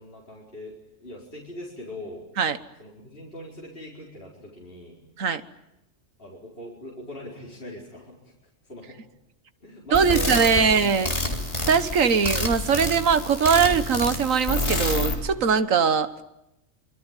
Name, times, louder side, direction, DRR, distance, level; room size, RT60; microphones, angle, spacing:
voice 1, 0.0-2.3 2.8-5.0 6.2-8.3 8.7-9.0 9.6-10.9 11.2-11.3, equal, 45° left, -4 dB, 4.9 m, -40 dB
sound 1, 9.9-15.1, left 1 dB, 25° left, 3.7 m, -28 dB
voice 2, 9.9-11.1 11.7-16.2, right 6 dB, 80° right, 12 dB, 1.6 m, -21 dB
26.0 x 24.0 x 9.1 m, 0.91 s
omnidirectional pair, 1.4 m